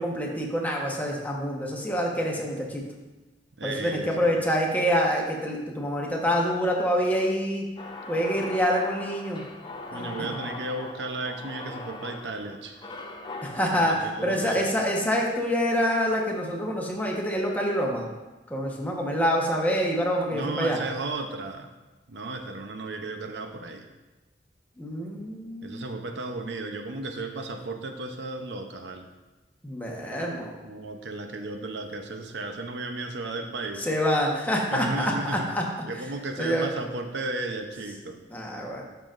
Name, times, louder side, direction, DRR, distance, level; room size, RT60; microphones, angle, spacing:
voice 1, 0.0-2.8 3.6-7.7 8.1-9.4 9.9-10.3 13.4-14.0 14.2-18.1 18.5-20.8 24.8-25.9 29.6-30.5 33.8-35.6 36.4-36.7 38.3-38.8, equal, 10° left, -2 dB, 1.2 m, -26 dB
voice 2, 3.6-4.4 9.9-12.9 13.7-14.6 20.3-21.7 22.1-23.9 25.6-29.1 30.6-33.9 34.7-35.6 35.8-38.2, right 2 dB, 85° right, 5 dB, 0.7 m, -34 dB
sound 1, 7.8-15.9, left 2 dB, 25° left, 0.6 m, -41 dB
12.0 x 5.8 x 2.5 m, 1.1 s
head